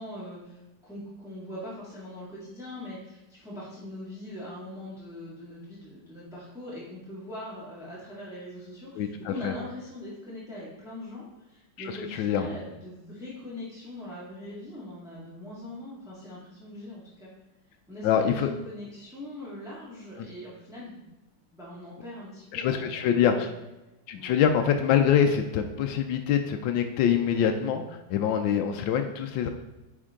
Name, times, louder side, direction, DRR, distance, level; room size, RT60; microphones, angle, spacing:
voice 1, 0.0-17.3 17.9-21.1 21.5-23.5 24.1-24.4, left 1 dB, ahead, -8 dB, 1.9 m, -41 dB
voice 2, 9.0-9.5 11.8-11.9 12.1-12.5 18.0-18.5 20.2-20.3 22.5-23.5 24.1-29.5, left 8 dB, 85° left, 5 dB, 1.4 m, -25 dB
9.7 x 4.5 x 3.7 m, 1.0 s
omnidirectional pair, 2.0 m